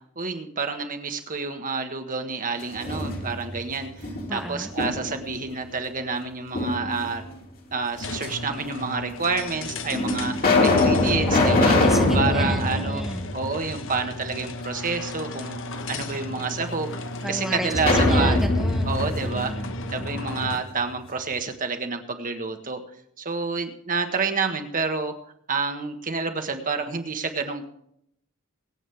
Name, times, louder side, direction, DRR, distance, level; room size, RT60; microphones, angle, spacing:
voice 1, 0.1-7.2 7.7-11.8 12.1-13.0 13.3-15.6 15.9-17.0 17.3-18.4 18.9-19.6 19.9-22.8 23.2-25.1 25.5-27.6, right 4 dB, 40° right, 6 dB, 1.6 m, -29 dB
sound 1, 2.6-3.6 4.0-5.3 6.5-7.3 8.2-8.3 9.2-9.3 9.9-14.0 14.3-14.4 17.7-20.5, left 2 dB, 45° left, 2.6 m, -23 dB
voice 2, 4.3-4.7 11.4-13.3 17.2-18.9 19.3-19.7, equal, ahead, 4 dB, 0.6 m, -33 dB
sound 2, 7.9-20.7, left 1 dB, 60° left, 1.1 m, -35 dB
24.5 x 8.6 x 3.5 m, 0.72 s
head